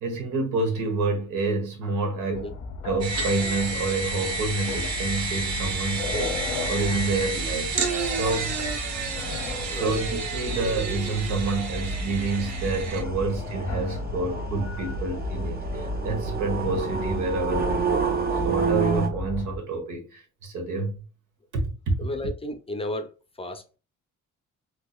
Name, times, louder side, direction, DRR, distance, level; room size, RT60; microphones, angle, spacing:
voice 1, 0.0-2.5 2.8-8.7 9.7-18.2 18.4-21.0 21.5-22.0, right 3 dB, 90° right, 1.2 m, -28 dB
sound 1, 2.3-19.6, left 2 dB, 70° left, 0.7 m, -34 dB
sound 2, 3.0-13.0, right 4 dB, 65° right, 1.0 m, -31 dB
sound 3, 4.3-19.1, right 5 dB, 30° right, 0.5 m, -32 dB
voice 2, 9.6-10.0 22.0-23.8, left 1 dB, 20° left, 0.5 m, -34 dB
3.6 x 2.9 x 2.3 m
cardioid pair, 90°, 30 cm